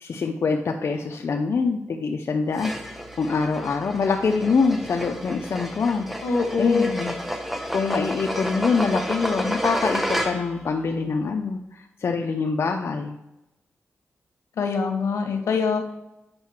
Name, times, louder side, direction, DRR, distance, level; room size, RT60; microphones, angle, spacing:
voice 1, 0.0-6.1 6.6-7.1 7.7-13.2, left 4 dB, 65° left, 3 dB, 0.6 m, -25 dB
sound 1, 2.5-10.6, equal, 5° right, 1.2 m, -31 dB
voice 2, 6.2-6.9 14.6-15.8, left 4 dB, 90° left, 4 dB, 1.3 m, -24 dB
7.9 x 5.6 x 4.3 m, 0.92 s
cardioid pair, 70°, 5 cm